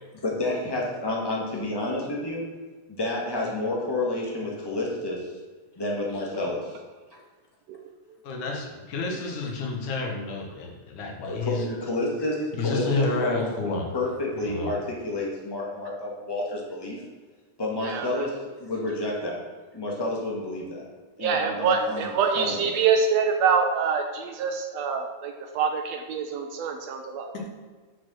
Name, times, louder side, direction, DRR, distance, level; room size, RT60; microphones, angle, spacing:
voice 1, 0.2-2.4 2.9-5.3 5.8-6.8 11.2-13.5 13.9-17.0 17.6-19.4 19.7-20.8 21.2-22.0 22.4-22.6, left 2 dB, 15° left, -2 dB, 0.9 m, -29 dB
voice 2, 8.2-11.7 12.5-14.0 14.4-14.7 27.3-27.5, left 3 dB, 85° left, 1 dB, 2.9 m, -30 dB
voice 3, 17.8-18.2 21.2-27.5, right 5 dB, 75° right, 5 dB, 1.6 m, -25 dB
7.0 x 6.5 x 6.3 m, 1.4 s
omnidirectional pair, 3.4 m